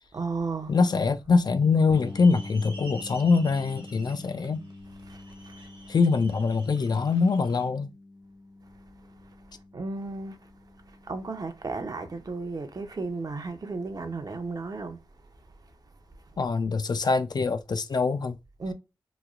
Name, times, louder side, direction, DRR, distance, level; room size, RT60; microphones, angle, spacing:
voice 1, 0.1-0.7 5.1-5.7 9.0-10.5 10.9-15.8 18.6-18.7, right 3 dB, 45° right, 0.6 m, -35 dB
voice 2, 0.7-4.6 5.9-7.9 16.4-18.4, left 4 dB, 50° left, 0.4 m, -24 dB
sound 1, 1.9-11.6, left 2 dB, 85° left, 1.4 m, -46 dB
sound 2, 1.9-7.7, right 1 dB, 60° right, 1.2 m, -49 dB
3.0 x 2.3 x 2.3 m
cardioid pair, 60°, 9 cm